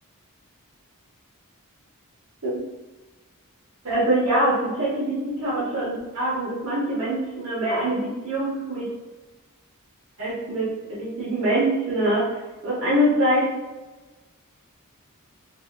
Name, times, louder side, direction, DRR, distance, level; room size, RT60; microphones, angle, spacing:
voice 1, 3.8-8.9 10.2-12.4 12.6-13.5, right 1 dB, 75° right, -9 dB, 1.2 m, -24 dB
4.8 x 2.5 x 2.5 m, 1.2 s
head